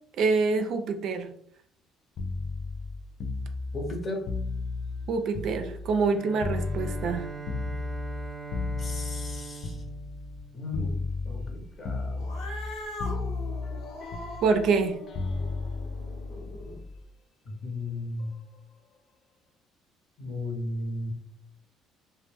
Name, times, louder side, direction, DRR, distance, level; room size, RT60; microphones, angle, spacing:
voice 1, 0.2-1.3 5.1-7.3 14.4-15.0, right 4 dB, 65° right, 6 dB, 0.4 m, -26 dB
sound 1, 2.2-6.1 6.4-10.4 10.7-11.6 11.8-12.7 13.0-17.0 18.2-18.4, left 3 dB, 60° left, 0.3 m, -34 dB
voice 2, 3.7-4.3 8.8-9.8 10.5-11.0 11.2-12.2 17.4-18.3 20.2-21.1, left 2 dB, 40° left, 2 dB, 0.8 m, -35 dB
Bowed string instrument, 6.1-11.2, right 3 dB, 30° right, 0.7 m, -42 dB
Cat, 12.2-16.8, left 1 dB, 80° left, 0.8 m, -41 dB
2.2 x 2.1 x 3.3 m, 0.64 s
supercardioid pair, 85°, 0 cm